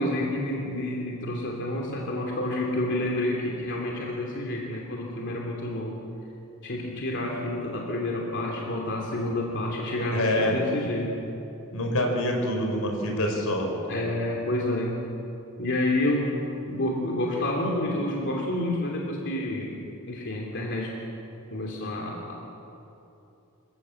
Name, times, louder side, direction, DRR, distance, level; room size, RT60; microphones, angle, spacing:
voice 1, 0.0-6.0 6.6-11.1 13.9-15.0 15.6-16.4 16.7-19.7 20.1-20.9 21.5-22.4, left 1 dB, 55° left, -2 dB, 3.0 m, -29 dB
voice 2, 10.1-10.6 11.7-13.7, left 1 dB, 85° left, 2 dB, 4.7 m, -26 dB
26.5 x 16.5 x 7.7 m, 2.9 s
head